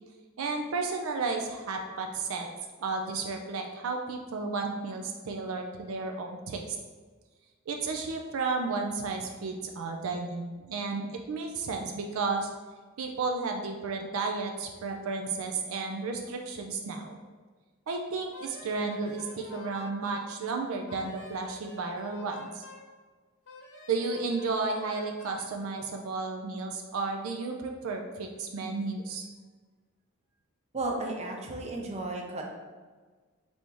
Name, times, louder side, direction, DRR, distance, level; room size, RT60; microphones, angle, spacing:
voice 1, 0.4-2.5 2.8-6.7 7.7-12.5 13.0-17.2 17.9-22.6 23.9-29.3, right 4 dB, 75° right, 3 dB, 0.4 m, -33 dB
Wind instrument woodwind instrument, 18.3-20.3 20.9-22.9 23.5-25.5, left 2 dB, 75° left, 0.9 m, -48 dB
voice 2, 30.7-32.4, right 2 dB, 30° right, 1 dB, 0.6 m, -34 dB
3.4 x 2.6 x 4.6 m, 1.4 s
head